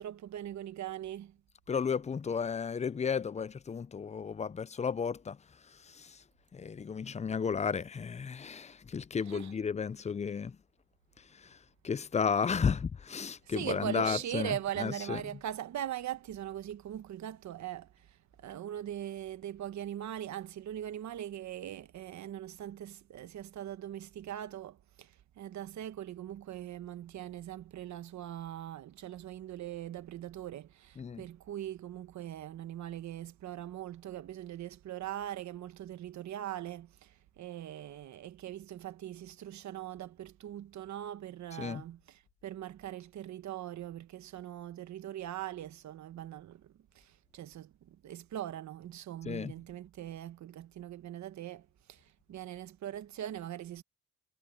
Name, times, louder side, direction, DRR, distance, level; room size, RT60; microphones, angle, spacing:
voice 1, 0.0-1.4 9.3-9.5 13.4-53.8, right 11 dB, 65° right, 1.2 m, -41 dB
voice 2, 1.7-5.4 5.7-6.2 6.5-10.6 11.3-11.6 11.8-15.2 31.0-31.2 41.6-41.8 49.3-49.5, left 6 dB, 25° left, 0.5 m, -33 dB
cardioid pair, 90°, 30 cm